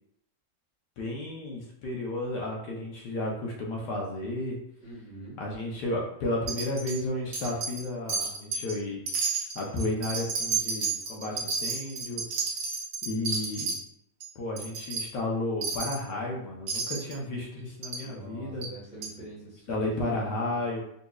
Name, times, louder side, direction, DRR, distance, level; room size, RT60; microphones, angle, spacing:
voice 1, 1.0-4.6 5.4-9.0 9.5-12.2 13.0-13.8 14.3-18.7 19.7-20.8, left 1 dB, 75° left, -2 dB, 1.3 m, -32 dB
voice 2, 4.8-5.4 18.0-20.6, right 2 dB, 5° right, -8 dB, 1.0 m, -45 dB
Wind chime, 6.5-7.0 7.3-8.7 9.1-13.8 14.2-14.3 14.6-15.0 15.6-16.0 16.7-17.1 17.8-18.0 18.6-18.7 19.0-19.1, right 5 dB, 85° right, 1.5 m, -31 dB
4.0 x 2.8 x 2.3 m, 0.75 s
omnidirectional pair, 1.9 m